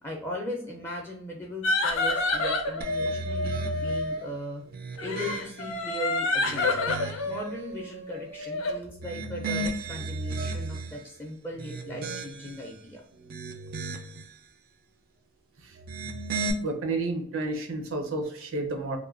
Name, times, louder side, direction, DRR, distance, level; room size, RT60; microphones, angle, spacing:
voice 1, 0.0-4.6 5.0-6.8 7.3-13.0, left 1 dB, 10° left, -1 dB, 0.4 m, -38 dB
sound 1, 1.6-4.3 5.0-8.8, left 2 dB, 70° left, 0.5 m, -29 dB
sound 2, 2.8-4.1 4.6-5.8 6.3-7.4 8.9-11.0 11.5-12.7 13.1-14.3 15.7-16.5, right 3 dB, 45° right, 0.4 m, -35 dB
voice 2, 16.6-19.0, right 2 dB, 80° right, 4 dB, 0.7 m, -31 dB
3.1 x 2.2 x 2.4 m, 0.62 s
head